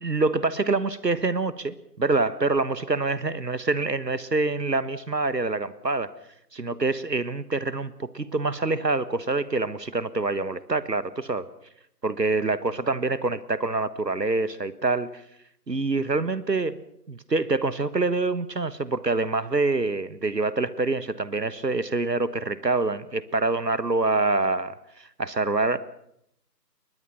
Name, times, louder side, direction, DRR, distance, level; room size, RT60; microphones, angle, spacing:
voice 1, 0.0-6.1 6.5-11.5 12.0-15.1 15.7-16.8 17.1-25.8, right 3 dB, 75° right, 16 dB, 1.4 m, -26 dB
22.5 x 20.5 x 5.9 m, 0.75 s
figure-of-eight pair, 175°, 50 cm